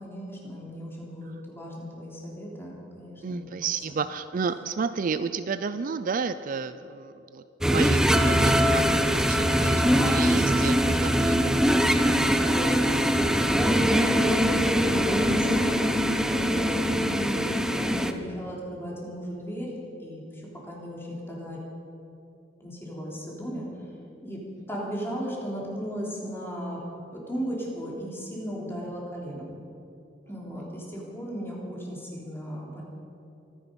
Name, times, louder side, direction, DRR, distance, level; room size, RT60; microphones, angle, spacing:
voice 1, 0.0-3.5 3.7-3.8 9.5-10.1 11.1-11.4 11.9-15.6 16.3-19.7 20.0-21.6 22.6-23.7 24.2-24.4 24.7-26.8 27.3-29.5 30.3-32.8, equal, 15° left, -4 dB, 3.4 m, -35 dB
voice 2, 3.2-11.4 11.6-11.8, right 5 dB, 50° right, 12 dB, 0.4 m, -32 dB
sound 1, 7.6-18.1, equal, 5° right, 0.7 m, -22 dB
24.0 x 10.0 x 5.3 m, 2.8 s
head